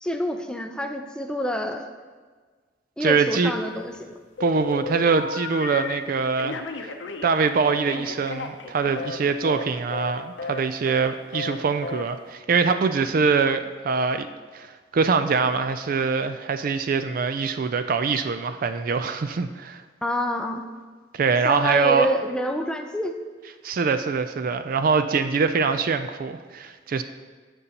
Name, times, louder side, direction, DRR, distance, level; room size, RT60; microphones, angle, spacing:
voice 1, 0.0-1.8 3.0-4.2 20.0-20.7 21.4-23.2, equal, 5° left, 5 dB, 0.5 m, -27 dB
voice 2, 3.0-3.5 4.4-6.6 7.2-14.3 14.5-19.8 21.1-22.1 23.6-27.0, right 5 dB, 50° right, 9 dB, 0.4 m, -23 dB
Telephone, 3.4-4.0 4.4-6.0 6.4-9.2 9.4-9.7 9.9-10.1 10.4-10.6 10.9-11.1 11.3-11.6 11.8-12.0, left 4 dB, 70° left, 0.7 m, -33 dB
15.5 x 5.3 x 2.9 m, 1.5 s
head